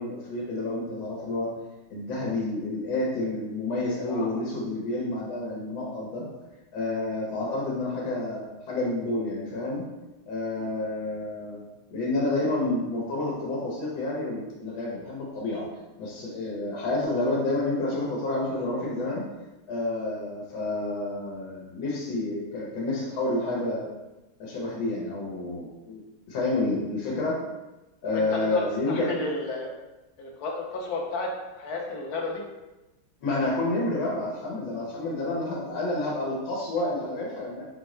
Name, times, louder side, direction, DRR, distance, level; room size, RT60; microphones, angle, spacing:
voice 1, 0.0-1.5 1.9-6.3 6.7-9.8 10.3-11.6 11.9-15.6 16.0-19.2 19.7-23.9 24.4-26.0 26.3-27.4 28.0-29.1 33.2-37.6, left 2 dB, 80° left, -4 dB, 1.8 m, -29 dB
voice 2, 28.1-29.7 30.2-32.4, left 2 dB, 60° left, 0 dB, 1.2 m, -32 dB
4.4 x 3.8 x 3.2 m, 1.0 s
omnidirectional pair, 2.2 m